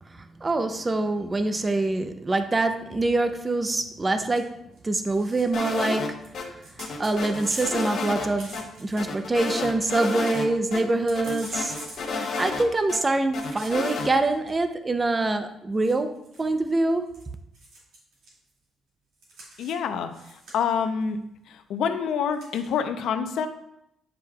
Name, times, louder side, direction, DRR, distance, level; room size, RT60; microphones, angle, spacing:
voice 1, 0.1-6.2 7.0-11.7 12.1-17.1, right 2 dB, 25° right, 0.6 m, -25 dB
sound 1, 4.3-4.4 4.7-4.8 5.1-5.8 6.2-9.2 9.6-9.7 9.8-10.4 10.8-12.8 13.4-14.5 15.3-15.4 15.8-17.2 17.5-18.4 19.2-19.8 20.1-20.8 22.3-22.7, right 2 dB, 85° right, 2.2 m, -45 dB
sound 2, 5.5-6.4 6.8-8.3 8.5-8.6 9.0-10.5 10.7-10.8 11.1-13.0 13.3-14.1, left 4 dB, 60° left, 1.0 m, -31 dB
voice 2, 19.6-20.1 20.5-21.2 21.5-23.5, left 7 dB, 80° left, 0.6 m, -26 dB
8.9 x 4.8 x 2.3 m
cardioid pair, 90°, 0 cm